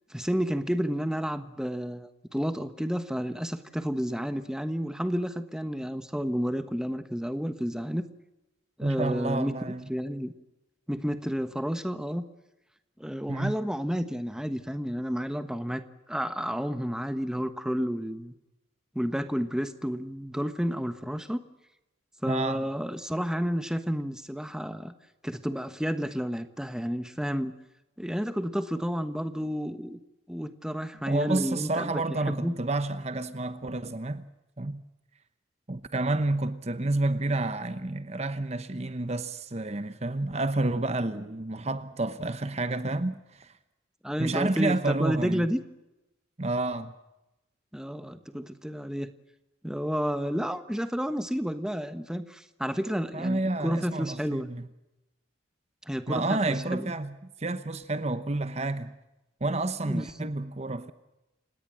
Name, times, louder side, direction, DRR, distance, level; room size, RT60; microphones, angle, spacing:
voice 1, 0.1-8.1 8.8-9.5 9.9-10.3 10.9-12.2 13.0-15.8 16.1-18.3 18.9-21.4 22.2-24.9 25.2-27.5 28.0-30.0 30.3-31.9 32.3-32.5 44.0-45.6 47.7-49.1 49.6-54.5 55.9-56.2 56.7-56.9 59.9-60.3, equal, 5° right, 1.3 m, -31 dB
voice 2, 8.8-9.9 13.3-13.5 22.3-22.6 31.1-34.3 34.6-34.8 35.7-43.5 44.2-45.5 46.4-46.9 53.1-54.7 56.1-58.9 59.4-60.9, right 2 dB, 35° right, 1.0 m, -30 dB
29.5 x 18.0 x 7.6 m
head